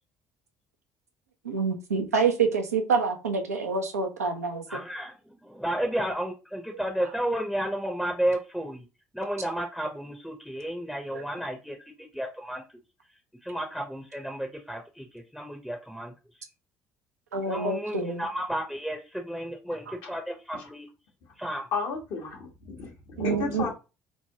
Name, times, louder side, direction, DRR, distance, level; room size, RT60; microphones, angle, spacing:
voice 1, 1.4-4.6 11.1-11.2 17.3-18.2 19.9-20.0 23.2-23.7, right 5 dB, 90° right, 3 dB, 0.5 m, -27 dB
voice 2, 4.7-8.9 9.1-12.6 13.4-16.1 17.5-20.9 21.4-21.7, right 1 dB, ahead, 2 dB, 0.6 m, -32 dB
voice 3, 21.7-23.7, left 4 dB, 65° left, 0 dB, 1.1 m, -33 dB
3.2 x 2.1 x 2.7 m, 0.29 s
hypercardioid pair, 55°, 8 cm